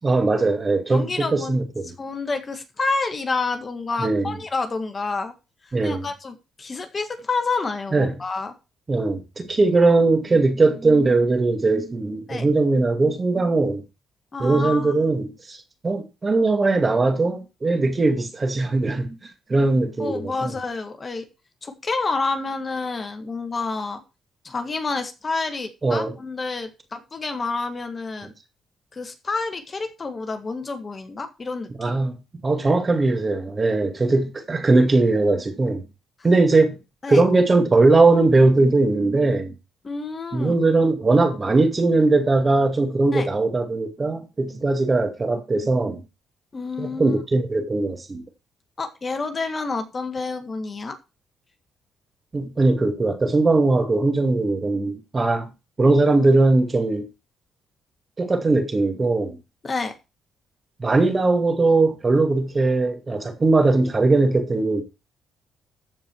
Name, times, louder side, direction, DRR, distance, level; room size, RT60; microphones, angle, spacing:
voice 1, 0.0-1.7 4.0-4.3 5.7-6.1 7.9-8.1 8.9-13.8 14.4-15.6 15.8-19.2 19.5-20.5 25.8-26.1 31.8-35.8 36.2-36.8 37.1-39.5 40.3-46.0 46.8-48.2 52.3-55.5 55.8-57.1 58.2-59.4 60.8-64.8, right 3 dB, 30° right, 2.2 m, -20 dB
voice 2, 0.9-1.6 2.0-5.3 5.6-8.5 12.3-12.4 14.3-14.9 20.0-21.3 21.6-24.0 24.4-28.3 28.9-31.9 37.0-37.2 39.8-40.5 43.1-43.3 46.5-47.1 48.8-51.0 59.6-59.9, left 3 dB, 35° left, 1.7 m, -29 dB
14.0 x 4.9 x 4.7 m
cardioid pair, 90°, 0 cm